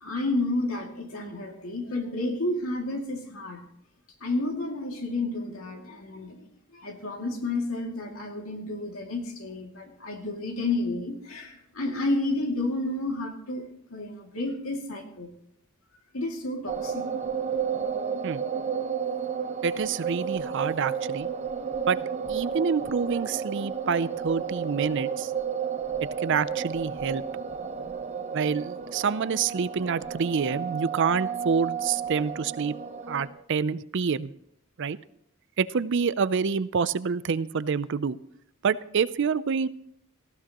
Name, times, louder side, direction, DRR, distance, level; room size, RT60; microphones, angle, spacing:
voice 1, 0.0-3.6 4.2-6.4 6.7-13.6 13.9-15.3 16.1-17.1 17.8-17.9, left 2 dB, 70° left, 2 dB, 2.4 m, -31 dB
sound 1, 16.7-33.3, right 7 dB, 30° right, 1.0 m, -32 dB
voice 2, 19.6-21.3 21.9-22.0 22.3-25.3 26.2-27.2 28.3-32.7 33.1-34.3 34.8-35.0 35.6-38.2 38.6-39.7, right 6 dB, 55° right, 16 dB, 0.5 m, -27 dB
18.5 x 15.0 x 3.0 m, 0.72 s
head